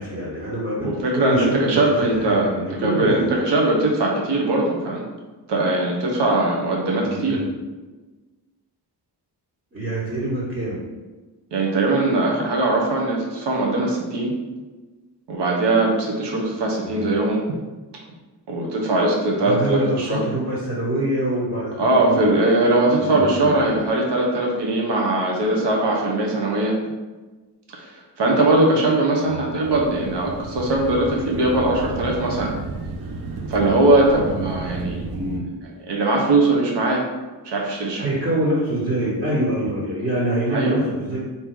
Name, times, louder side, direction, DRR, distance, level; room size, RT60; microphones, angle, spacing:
voice 1, 0.0-3.3 7.1-7.4 9.7-10.8 16.8-17.1 19.4-22.2 23.0-23.7 29.2-29.8 35.1-35.5 37.8-41.2, right 1 dB, 30° right, -7 dB, 1.3 m, -25 dB
voice 2, 0.8-5.0 5.5-7.4 11.5-14.4 15.3-17.4 18.5-20.2 21.8-26.8 27.7-27.8 28.2-32.5 33.5-35.0 35.9-37.1 37.4-38.1 40.5-40.8, right 2 dB, 90° right, -2 dB, 0.9 m, -20 dB
sound 1, 29.6-35.4, right 3 dB, 60° right, 0.7 m, -32 dB
3.7 x 2.9 x 4.5 m, 1.2 s
wide cardioid pair, 120°, 41 cm